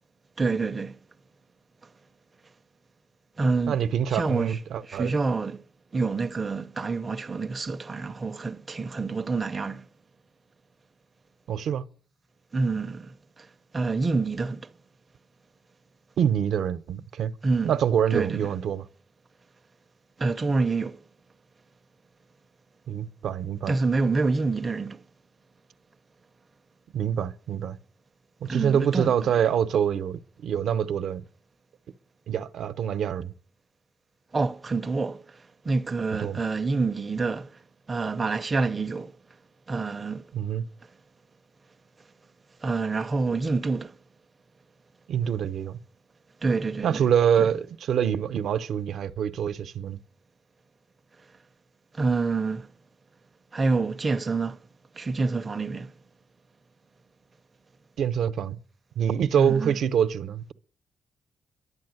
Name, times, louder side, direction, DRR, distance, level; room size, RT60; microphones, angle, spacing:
voice 1, 0.4-1.0 3.4-3.8 4.1-5.6 5.9-9.9 12.5-14.7 17.4-17.8 18.1-18.5 20.2-21.0 23.7-25.0 28.5-29.5 34.3-37.6 37.9-39.2 39.7-40.3 42.6-44.0 46.4-47.0 47.4-47.5 51.9-52.7 53.5-54.6 54.9-55.9 59.3-59.8, right 3 dB, 25° right, 0.6 m, -27 dB
voice 2, 3.7-5.1 11.5-11.9 16.2-17.3 17.6-18.9 22.9-23.8 26.9-27.8 28.4-31.2 32.3-33.3 36.2-36.4 40.3-40.7 45.1-45.8 46.8-50.0 58.0-58.6 59.0-60.5, right 8 dB, 70° right, 0.8 m, -25 dB
11.5 x 8.8 x 8.0 m
cardioid pair, 135°, 0 cm